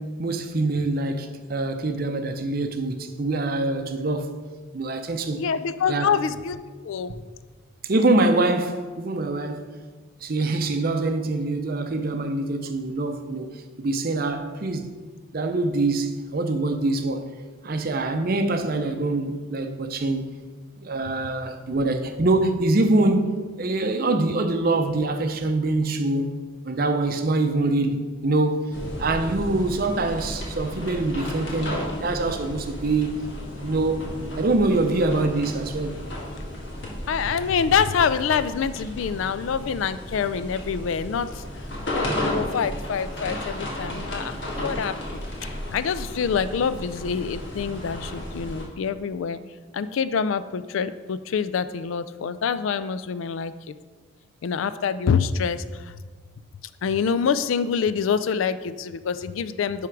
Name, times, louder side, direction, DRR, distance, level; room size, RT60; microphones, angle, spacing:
voice 1, 0.0-4.5 4.7-5.4 5.9-6.2 7.1-7.2 7.8-9.8 10.2-15.0 15.3-17.3 17.6-20.3 20.8-26.4 26.6-33.2 33.6-34.1 34.4-36.0, right 2 dB, 45° right, 0.5 m, -24 dB
voice 2, 5.4-6.6 6.8-7.1 37.1-41.4 41.9-49.4 49.7-53.7 54.4-55.9 56.8-59.9, left 6 dB, 75° left, 0.4 m, -26 dB
sound 1, 28.7-48.6, left 1 dB, 60° left, 1.6 m, -33 dB
10.5 x 3.6 x 4.6 m
head